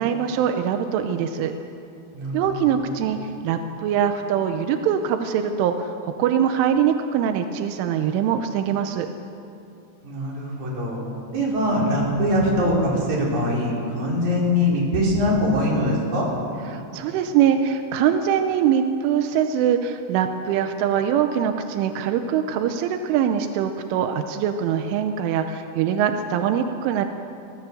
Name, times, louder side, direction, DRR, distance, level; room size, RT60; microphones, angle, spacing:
voice 1, 0.0-1.5 2.3-9.1 16.7-27.1, right 8 dB, 85° right, 6 dB, 3.4 m, -23 dB
voice 2, 10.0-11.0 11.3-16.3, left 1 dB, 40° right, -5 dB, 6.4 m, -22 dB
26.0 x 17.0 x 7.8 m, 2.7 s
omnidirectional pair, 5.4 m